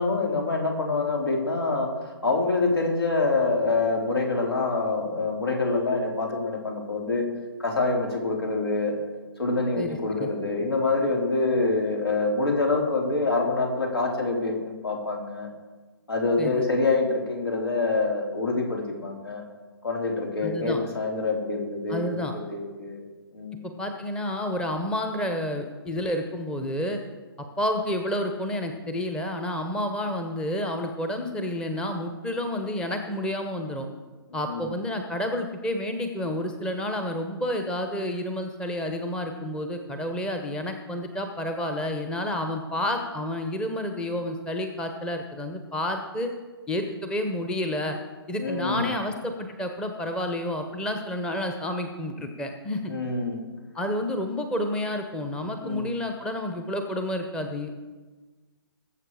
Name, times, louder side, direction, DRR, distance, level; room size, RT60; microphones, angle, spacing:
voice 1, 0.0-7.3 7.6-9.0 9.4-15.5 16.1-19.4 19.8-22.2 22.5-23.0 23.3-23.6 34.3-34.7 48.4-49.0 52.9-53.4 55.6-55.9, left 3 dB, 75° left, 0 dB, 3.9 m, -26 dB
voice 2, 9.8-10.3 16.4-16.7 20.4-20.8 21.9-22.3 23.6-27.0 27.6-33.9 34.3-46.3 46.7-48.0 48.3-52.9 53.7-57.7, left 1 dB, 5° left, 5 dB, 0.9 m, -30 dB
21.0 x 7.8 x 4.9 m, 1.3 s
figure-of-eight pair, 140°, 13 cm